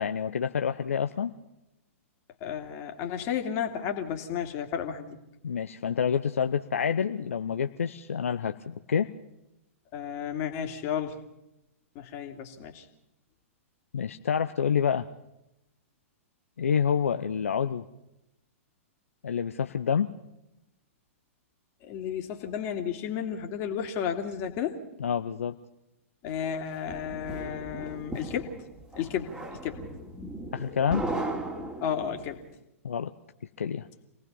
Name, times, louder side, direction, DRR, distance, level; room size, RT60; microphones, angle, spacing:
voice 1, 0.0-1.3 5.4-9.1 13.9-15.1 16.6-17.8 19.2-20.1 25.0-25.5 30.5-31.1 32.8-33.1 33.6-33.9, left 7 dB, 70° left, 8 dB, 0.8 m, -28 dB
voice 2, 2.4-5.2 9.9-11.2 11.9-12.9 21.8-24.8 26.2-28.5 29.0-29.8 31.8-32.4, left 8 dB, 35° left, 4 dB, 2.6 m, -33 dB
sound 1, 26.4-32.3, right 2 dB, 10° right, 3.2 m, -37 dB
26.5 x 18.5 x 5.5 m, 0.89 s
figure-of-eight pair, 110°, 8 cm